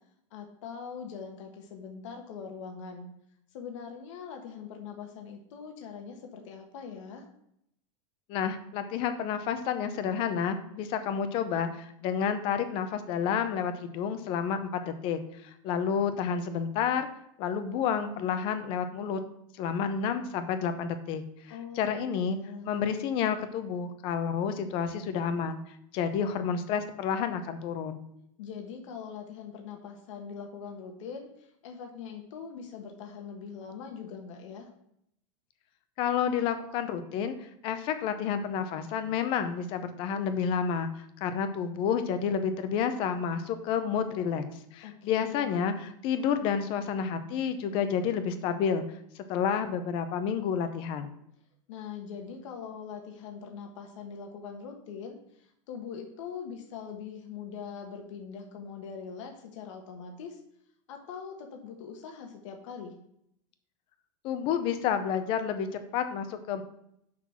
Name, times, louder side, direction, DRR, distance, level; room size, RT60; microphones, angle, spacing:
voice 1, 0.3-3.1 3.5-7.3 21.5-22.7 28.4-34.7 44.8-45.6 51.7-60.4 60.9-62.9, left 6 dB, 65° left, 3 dB, 1.3 m, -42 dB
voice 2, 8.3-17.1 17.4-19.2 19.6-22.4 22.6-25.6 25.9-28.0 36.0-37.3 37.6-44.4 44.7-48.8 49.3-51.1 64.2-66.6, left 7 dB, 30° left, 9 dB, 0.7 m, -30 dB
6.1 x 5.9 x 5.8 m, 0.76 s
supercardioid pair, 175°, 17 cm